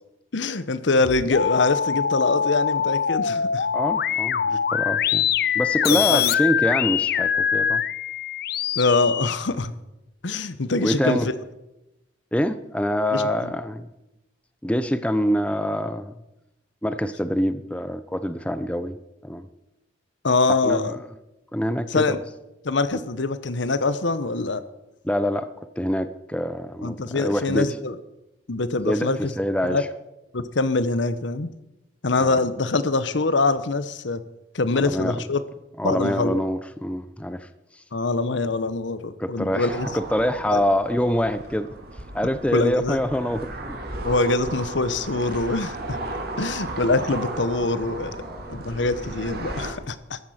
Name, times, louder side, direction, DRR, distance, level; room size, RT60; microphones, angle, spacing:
voice 1, 0.3-3.7 5.9-6.3 8.8-9.7 10.2-11.2 13.1-13.5 20.2-21.0 21.9-22.2 22.6-24.6 26.8-27.9 28.5-29.3 29.7-29.8 30.3-31.5 32.0-34.2 34.5-35.4 35.8-36.4 37.9-39.9 40.5-40.6 42.5-43.0 44.0-46.0 46.4-48.2 48.5-50.2, left 3 dB, 70° left, 13 dB, 0.9 m, -24 dB
sound 1, 0.9-9.4, left 8 dB, 55° left, 0.5 m, -24 dB
voice 2, 3.7-5.3 5.5-7.8 10.8-11.3 12.3-13.9 14.6-16.1 16.8-19.0 19.2-19.5 20.6-21.0 21.5-22.2 25.0-25.5 25.8-27.7 28.8-29.1 29.4-29.9 32.2-32.5 34.7-35.2 35.8-37.5 39.2-41.7 42.1-43.8 48.2-48.6, equal, 5° left, 12 dB, 0.6 m, -25 dB
sound 2, 39.6-49.7, right 2 dB, 55° right, 2.4 m, -35 dB
14.0 x 11.0 x 6.5 m, 0.93 s
head